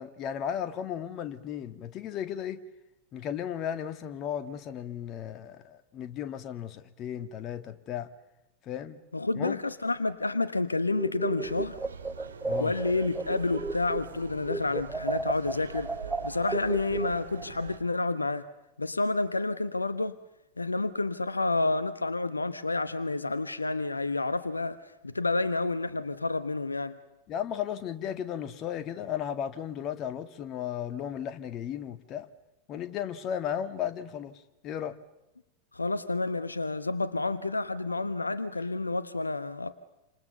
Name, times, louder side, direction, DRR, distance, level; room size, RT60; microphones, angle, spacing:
voice 1, 0.0-2.6 3.1-8.1 8.6-9.0 9.4-9.6 12.5-12.7 27.3-32.3 32.7-35.0, left 9 dB, 35° left, 1.8 m, -35 dB
voice 2, 9.1-11.8 12.6-15.9 16.2-18.5 18.8-20.2 20.6-27.0 35.7-39.7, left 3 dB, 80° left, 1.0 m, -29 dB
sound 1, 10.9-14.2 14.5-17.5, right 3 dB, 10° right, 0.8 m, -34 dB
sound 2, 11.4-17.8, right 6 dB, 70° right, 2.2 m, -44 dB
28.5 x 27.0 x 6.8 m
figure-of-eight pair, 90°, 0 cm